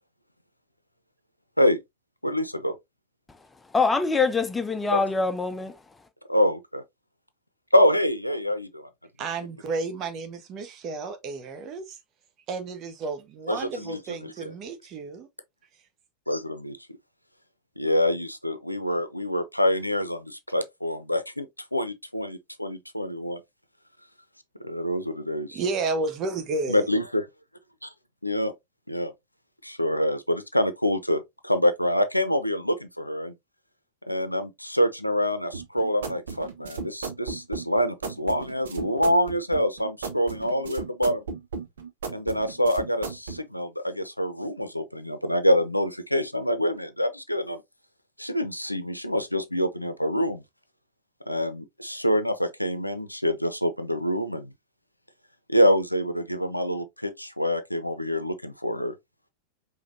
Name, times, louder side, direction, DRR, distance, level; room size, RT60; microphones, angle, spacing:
voice 1, 2.2-2.7 4.9-5.0 6.3-6.8 7.7-8.9 13.5-14.5 16.3-16.8 17.8-23.4 24.6-25.6 26.7-27.3 27.8-27.9 28.2-28.5 28.9-29.1 29.6-33.3 34.1-41.2 42.1-47.6 48.2-50.4 51.3-54.5 55.5-58.9, equal, 90° left, 0.6 m, -26 dB
voice 2, 3.7-5.8, left 4 dB, 10° left, 0.7 m, -24 dB
voice 3, 9.2-12.0 12.5-15.3 25.5-26.9, right 3 dB, 35° right, 1.0 m, -32 dB
sound 1, 35.5-43.4, right 4 dB, 65° right, 1.0 m, -36 dB
5.0 x 3.4 x 2.6 m
figure-of-eight pair, 90°, 0 cm